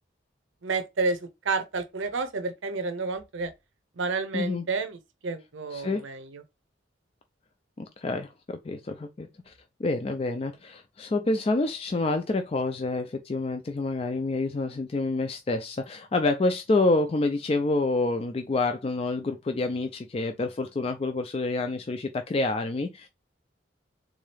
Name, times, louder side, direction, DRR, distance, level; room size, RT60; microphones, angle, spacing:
voice 1, 0.6-3.5 4.0-6.4, right 4 dB, 85° right, 0.7 m, -30 dB
voice 2, 4.3-4.7 5.7-6.0 7.8-9.5 9.8-23.1, left 2 dB, 30° left, 0.3 m, -28 dB
3.6 x 2.7 x 3.3 m
head